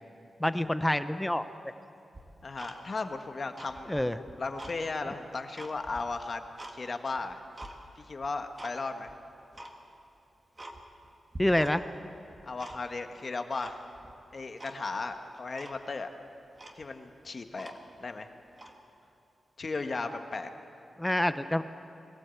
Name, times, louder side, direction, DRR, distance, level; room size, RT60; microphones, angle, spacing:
voice 1, 0.4-1.5 3.9-4.2 11.4-11.8 21.0-21.6, left 1 dB, 10° left, 11 dB, 0.6 m, -27 dB
Tick-tock, 2.1-3.2 3.5-4.8 5.2-6.8 7.2-7.8 8.2-8.8 9.0-9.1 9.5-9.8 10.2-10.3 10.6-11.1 11.3-12.0 12.3-13.1 13.6-14.1 14.6-14.8 15.1-15.2 15.6-15.8 16.3-16.4 16.6-18.1 18.5-18.8, right 1 dB, 25° right, 1.7 m, -46 dB
voice 2, 2.4-4.0 4.4-6.4 6.7-7.4 8.0-9.1 12.4-13.8 14.3-16.1 16.7-17.7 18.0-18.3 19.6-20.5, left 3 dB, 40° left, 6 dB, 1.3 m, -36 dB
22.0 x 16.0 x 8.3 m, 2.7 s
wide cardioid pair, 140°, 0 cm